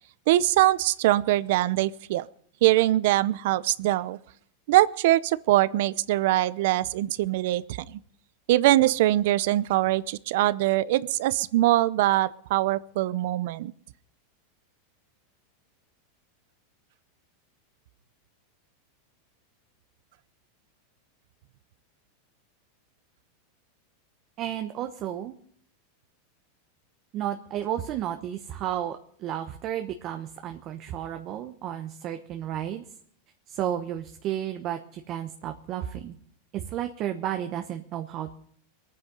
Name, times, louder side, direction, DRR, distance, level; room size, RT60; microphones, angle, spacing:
voice 1, 0.3-2.3 2.6-4.2 4.7-8.0 8.5-13.7, right 15 dB, 65° right, 19 dB, 0.6 m, -23 dB
voice 2, 24.4-25.3 27.1-32.8 33.5-36.2 36.5-38.4, right 11 dB, 40° right, 6 dB, 1.1 m, -32 dB
21.5 x 9.6 x 5.3 m, 0.62 s
supercardioid pair, 140°, 0 cm